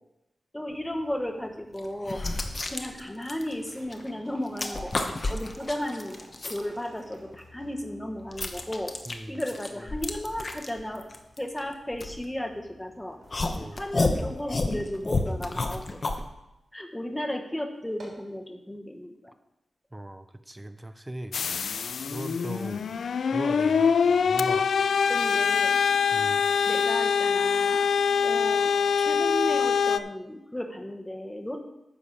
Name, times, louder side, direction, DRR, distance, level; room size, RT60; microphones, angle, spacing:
voice 1, 0.5-2.2 2.7-6.2 6.5-8.9 9.3-11.1 11.4-13.2 13.7-16.0 16.7-19.3 25.1-25.8 26.5-27.9 28.2-31.6, left 1 dB, 10° left, 4 dB, 1.2 m, -34 dB
sound 1, 1.0-1.1 1.8-4.1 4.4-6.6 7.1-12.7 13.3-16.2, left 2 dB, 40° left, 1.0 m, -31 dB
sound 2, 3.4-15.5 15.9-16.0 16.8-16.9 17.3-17.4 17.8-18.3, right 2 dB, 70° right, 3.7 m, -52 dB
voice 2, 9.1-9.4 13.5-13.8 19.9-22.8 23.3-24.7 26.1-26.5, right 1 dB, 15° right, 10 dB, 0.6 m, -39 dB
sound 3, 21.3-30.0, left 6 dB, 80° left, 0.3 m, -24 dB
9.8 x 5.3 x 6.5 m, 0.91 s
wide cardioid pair, 110°, 0 cm